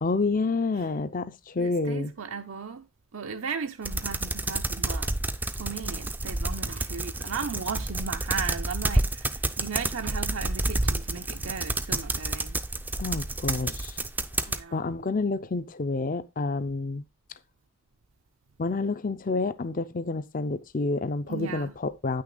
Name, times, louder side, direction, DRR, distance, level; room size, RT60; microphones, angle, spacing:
voice 1, 0.0-2.1 13.0-14.0 14.4-17.1 18.6-22.2, left 3 dB, 40° left, 0.5 m, -29 dB
voice 2, 1.6-2.9 3.1-5.2 5.5-12.6 14.5-14.8 21.3-21.8, right 5 dB, 70° right, 0.7 m, -36 dB
sound 1, 3.8-14.6, right 2 dB, 10° right, 0.4 m, -29 dB
9.2 x 6.3 x 3.8 m
head